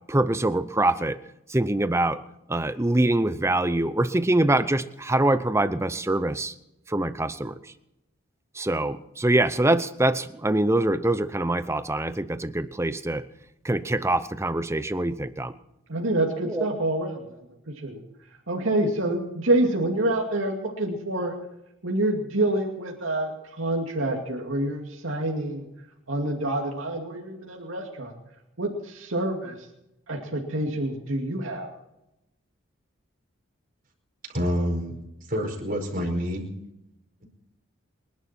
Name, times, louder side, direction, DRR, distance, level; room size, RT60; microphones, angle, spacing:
voice 1, 0.1-1.2 1.5-2.2 2.5-6.5 6.9-7.5 8.6-13.2 13.6-15.5 16.4-16.7, right 1 dB, 15° right, 13 dB, 0.7 m, -24 dB
voice 2, 15.9-17.5 17.8-18.0 18.5-21.3 21.8-23.3 23.6-25.6 26.1-28.1 28.6-29.6 30.1-31.7, right 1 dB, 85° right, 0 dB, 2.5 m, -27 dB
voice 3, 34.3-35.0 35.3-36.5, equal, 45° right, 1 dB, 5.0 m, -27 dB
27.5 x 11.5 x 4.4 m, 0.87 s
head